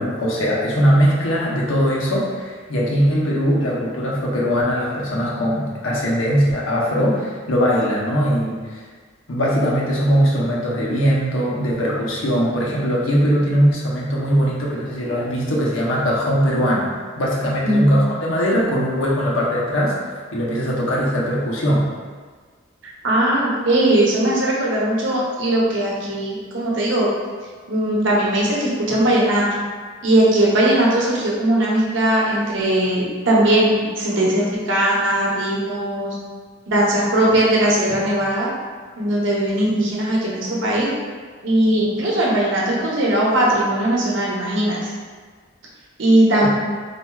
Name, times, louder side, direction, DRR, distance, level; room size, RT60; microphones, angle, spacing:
voice 1, 0.0-8.9 9.3-19.9 20.3-21.9, equal, 90° left, -5 dB, 0.8 m, -20 dB
voice 2, 23.0-27.1 27.7-29.6 30.0-36.1 36.7-38.5 39.0-40.9 41.4-44.9 46.0-46.5, right 1 dB, 65° right, -5 dB, 0.8 m, -19 dB
4.4 x 2.5 x 2.3 m, 1.5 s
head